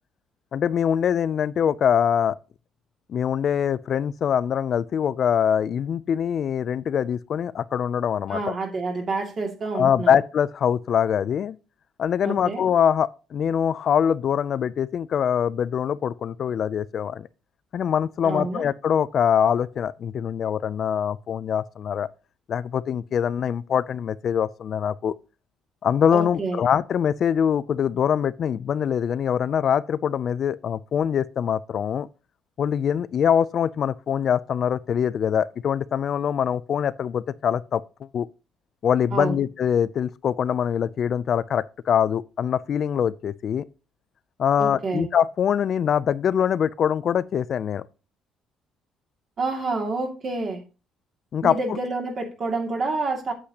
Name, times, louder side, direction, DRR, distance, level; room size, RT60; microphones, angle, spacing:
voice 1, 0.5-2.4 3.1-8.5 9.7-11.6 12.0-17.3 17.7-22.1 22.5-25.1 25.8-32.1 32.6-37.8 38.1-38.3 38.8-43.6 44.4-47.8 51.3-51.8, left 8 dB, 50° left, 0.4 m, -23 dB
voice 2, 8.3-10.1 12.2-12.6 18.2-18.6 26.1-26.6 39.1-39.4 44.6-45.1 49.4-50.6 51.4-53.3, right 3 dB, 40° right, 2.2 m, -28 dB
8.6 x 8.1 x 2.8 m
cardioid pair, 115°, 0 cm